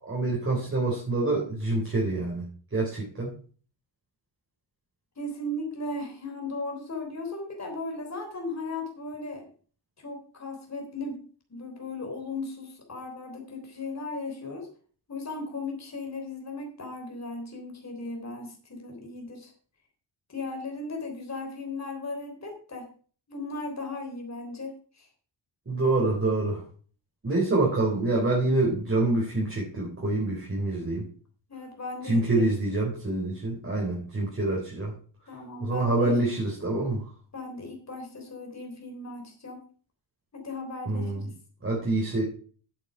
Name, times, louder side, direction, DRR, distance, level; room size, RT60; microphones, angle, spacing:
voice 1, 0.0-3.3 25.7-26.6 27.2-31.0 32.0-34.9 35.6-37.0 40.9-41.2 41.6-42.2, right 2 dB, 30° right, -3 dB, 3.7 m, -26 dB
voice 2, 5.2-9.4 10.0-11.2 11.5-14.7 15.1-19.5 20.3-22.9 23.3-25.1 31.5-32.5 35.3-36.2 37.3-39.7 40.3-41.3, left 2 dB, 35° left, 3 dB, 3.5 m, -37 dB
8.6 x 8.2 x 5.5 m, 0.42 s
cardioid pair, 90°, 46 cm